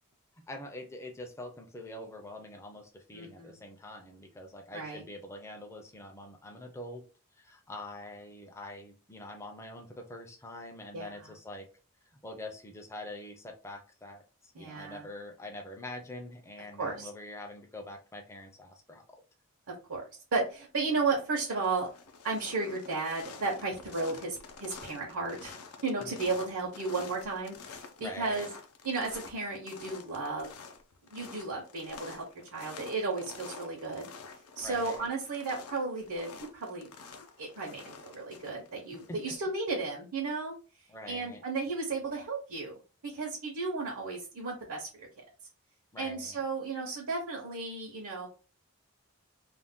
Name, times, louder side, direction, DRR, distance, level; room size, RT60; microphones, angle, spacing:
voice 1, 0.4-7.0 7.3-11.7 12.0-19.0 26.0-26.4 28.0-28.5 34.6-35.1 39.1-39.3 40.9-41.4 45.9-46.4, left 1 dB, 10° left, 2 dB, 0.4 m, -45 dB
voice 2, 3.1-3.6 4.7-5.0 10.9-11.3 14.5-15.1 16.8-17.1 19.7-20.0 20.3-21.9 22.2-25.6 25.8-28.5 28.8-30.5 31.1-32.2 32.5-34.1 34.6-36.9 37.4-40.5 41.1-42.8 43.0-45.1 46.0-48.3, right 3 dB, 80° right, -1 dB, 0.7 m, -34 dB
sound 1, 20.8-21.2 21.5-39.4, left 5 dB, 85° left, 0.5 m, -49 dB
2.5 x 2.1 x 3.5 m, 0.35 s
head